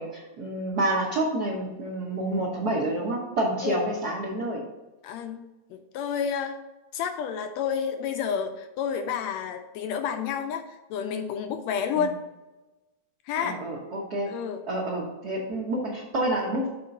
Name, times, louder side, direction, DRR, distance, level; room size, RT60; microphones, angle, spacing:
voice 1, 0.0-4.6 11.9-12.1 13.4-14.3 14.7-16.7, right 1 dB, 65° right, -4 dB, 0.9 m, -28 dB
voice 2, 5.0-5.4 5.7-6.6 6.9-10.6 10.9-12.2 13.3-13.6 14.3-14.6, left 7 dB, 80° left, 8 dB, 1.6 m, -30 dB
6.7 x 4.3 x 5.3 m, 1.1 s
omnidirectional pair, 3.4 m